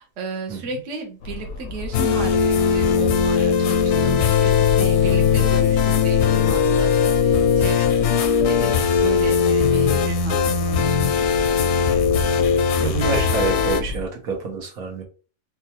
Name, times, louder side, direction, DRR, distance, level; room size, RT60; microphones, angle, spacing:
voice 1, 0.0-12.0, right 4 dB, 65° right, 3 dB, 1.1 m, -34 dB
sound 1, 1.2-14.1, left 3 dB, 90° left, 1.1 m, -32 dB
sound 2, 1.9-13.8, left 6 dB, 65° left, 0.7 m, -19 dB
voice 2, 12.8-15.0, right 3 dB, 80° right, 1 dB, 1.4 m, -26 dB
4.3 x 2.3 x 2.8 m, 0.36 s
omnidirectional pair, 1.5 m